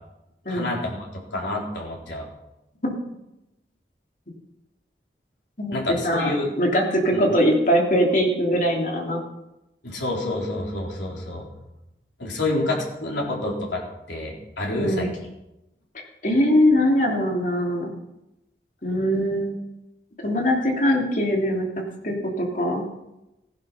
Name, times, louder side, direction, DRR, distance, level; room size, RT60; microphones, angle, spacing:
voice 1, 0.5-2.3 5.7-6.5 7.1-7.2 9.8-11.5 12.2-13.8 14.1-15.1, left 2 dB, 85° left, -2 dB, 3.9 m, -28 dB
voice 2, 6.0-9.2 14.8-15.1 16.2-17.9 18.8-19.6 20.2-22.9, equal, 45° left, 0 dB, 3.0 m, -22 dB
16.0 x 11.0 x 5.7 m, 0.91 s
head